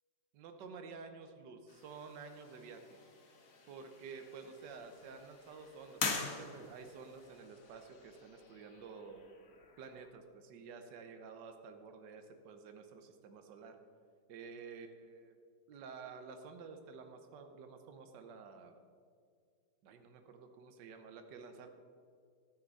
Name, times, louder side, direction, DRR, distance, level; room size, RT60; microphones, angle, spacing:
voice 1, 0.3-3.0 3.7-9.2 9.8-13.7 14.3-15.3 15.7-18.8 19.8-21.7, right 5 dB, 70° right, 6 dB, 1.5 m, -51 dB
sound 1, 1.7-10.1, left 4 dB, 50° left, 1.5 m, -45 dB
13.0 x 9.8 x 4.1 m, 2.2 s
omnidirectional pair, 2.0 m